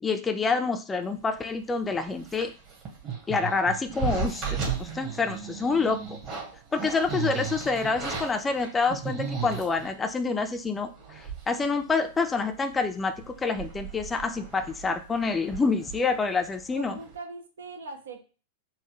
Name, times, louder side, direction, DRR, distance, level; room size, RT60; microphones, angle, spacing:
voice 1, 0.0-2.5 3.3-6.2 6.7-17.0, left 4 dB, 15° left, 7 dB, 0.4 m, -27 dB
sound 1, 1.9-9.9 10.6-10.7 11.0-11.6 11.9-12.0 12.4-12.7 13.1-16.6 16.9-17.2, right 6 dB, 35° right, 1.4 m, -35 dB
voice 2, 15.7-16.0 16.7-18.2, right 3 dB, 75° right, 4 dB, 0.7 m, -41 dB
4.1 x 2.2 x 3.0 m, 0.36 s
figure-of-eight pair, 95°, 0 cm